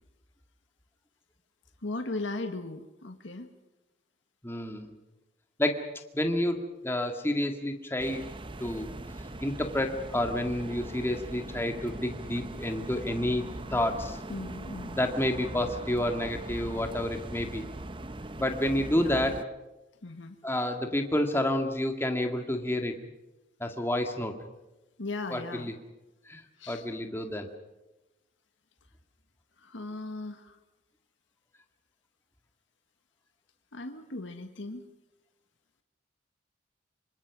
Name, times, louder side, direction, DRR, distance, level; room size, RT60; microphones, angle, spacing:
voice 1, 1.8-3.5 14.3-15.0 19.0-19.2 20.0-20.4 25.0-25.7 26.6-26.9 29.6-30.6 33.7-34.8, left 2 dB, 75° left, 6 dB, 1.6 m, -37 dB
voice 2, 4.4-4.9 5.6-5.8 6.1-8.2 8.6-8.9 9.4-13.4 13.7-14.2 14.9-17.6 18.4-19.4 20.4-22.9 23.6-24.3 25.3-25.7 26.3-26.4 26.7-27.5, left 1 dB, 10° left, 4 dB, 2.0 m, -29 dB
sound 1, 8.0-19.4, right 1 dB, 25° right, 0.9 m, -40 dB
26.0 x 25.5 x 6.1 m, 1.0 s
head